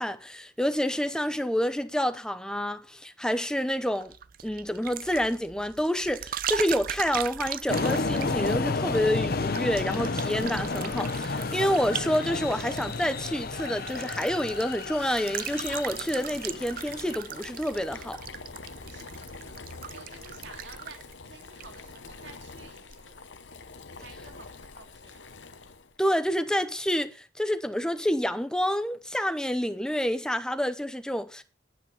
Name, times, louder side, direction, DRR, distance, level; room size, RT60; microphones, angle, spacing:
voice 1, 0.0-4.1 4.4-18.2 26.0-31.4, equal, 5° left, 0.7 m, -28 dB
sound 1, 3.9-22.3 22.6-23.0, right 10 dB, 50° right, 0.5 m, -39 dB
sound 2, 7.7-17.2, left 3 dB, 55° left, 0.9 m, -31 dB
Boiling, 14.7-26.0, left 4 dB, 75° left, 1.1 m, -46 dB
voice 2, 18.6-19.6 19.8-23.2 23.9-25.3, right 4 dB, 70° right, 2.3 m, -51 dB
9.6 x 8.7 x 5.5 m
head